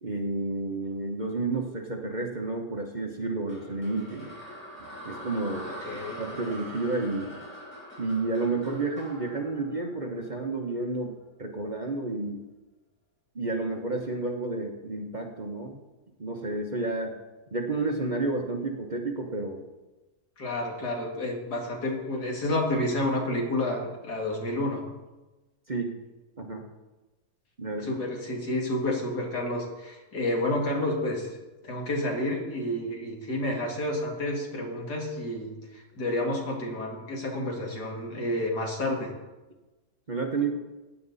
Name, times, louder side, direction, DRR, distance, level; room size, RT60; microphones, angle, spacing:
voice 1, 0.0-4.3 4.8-7.4 8.0-12.4 13.3-15.8 16.2-17.2 17.5-19.6 25.7-25.9 26.4-26.6 27.6-28.0 40.1-40.6, right 3 dB, 30° right, 1 dB, 1.1 m, -31 dB
sound 1, 3.5-10.7, equal, 5° left, 4.1 m, -43 dB
voice 2, 5.8-6.2 20.4-24.8 27.8-31.4 31.6-39.1, left 1 dB, 75° left, 0 dB, 2.7 m, -30 dB
15.5 x 9.4 x 4.1 m, 1.1 s
omnidirectional pair, 1.7 m